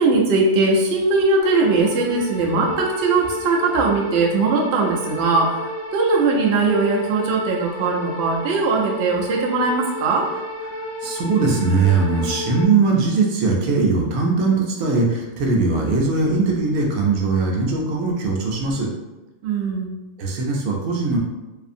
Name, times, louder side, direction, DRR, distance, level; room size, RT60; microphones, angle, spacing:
voice 1, 0.0-10.3 19.4-19.9, right 3 dB, 65° right, -2 dB, 0.7 m, -20 dB
sound 1, 1.4-12.6, left 1 dB, 65° left, 1.1 m, -32 dB
voice 2, 11.0-18.9 20.2-21.2, right 4 dB, 85° right, 0 dB, 1.0 m, -20 dB
2.7 x 2.4 x 2.5 m, 1.1 s
omnidirectional pair, 1.4 m